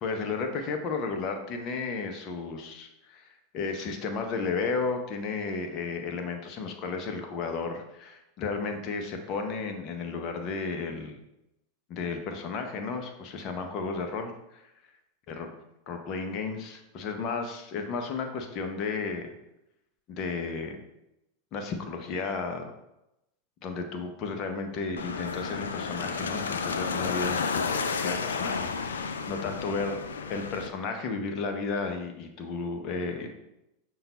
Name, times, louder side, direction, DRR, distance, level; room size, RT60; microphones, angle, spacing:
voice 1, 0.0-11.2 11.9-14.7 15.3-15.5 15.9-19.3 20.1-20.8 21.5-22.7 23.6-30.0 30.3-33.3, left 4 dB, 45° left, 5 dB, 0.7 m, -33 dB
sound 1, 25.0-30.7, left 5 dB, 80° left, 0.3 m, -31 dB
5.6 x 2.3 x 4.0 m, 0.89 s
hypercardioid pair, 95°, 0 cm